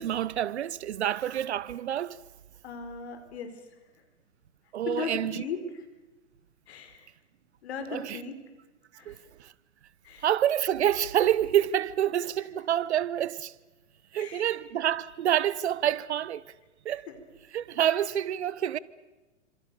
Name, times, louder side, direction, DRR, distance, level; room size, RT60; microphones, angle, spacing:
voice 1, 0.0-2.2 4.7-5.4 7.9-8.2 9.1-9.5 10.2-13.5 14.1-16.4 16.8-17.1 17.5-18.8, right 11 dB, 60° right, 1.1 m, -27 dB
voice 2, 2.6-3.6 4.8-5.8 6.7-7.1 7.6-8.3 9.0-9.2 10.0-10.3 14.1-14.6 17.1-17.2, left 5 dB, 55° left, 5.1 m, -38 dB
29.0 x 26.0 x 6.9 m
figure-of-eight pair, 115°, 37 cm